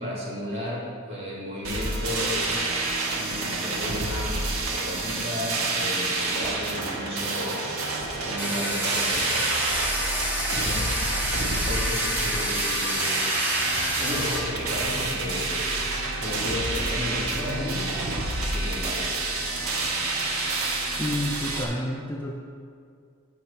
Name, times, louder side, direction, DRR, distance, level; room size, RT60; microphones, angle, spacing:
voice 1, 0.0-2.5 3.1-4.4 4.7-7.6 8.0-9.5 10.6-11.0 11.5-13.2 13.9-15.9 16.2-17.9 18.5-19.1, left 1 dB, 30° right, -6 dB, 2.4 m, -33 dB
sound 1, 1.6-21.6, right 2 dB, 70° right, 1.4 m, -28 dB
Domestic sounds home sounds, 8.4-14.4, equal, 10° right, 1.4 m, -29 dB
voice 2, 21.0-22.3, left 1 dB, 10° left, 0 dB, 0.5 m, -29 dB
9.4 x 6.0 x 5.5 m, 2.3 s
head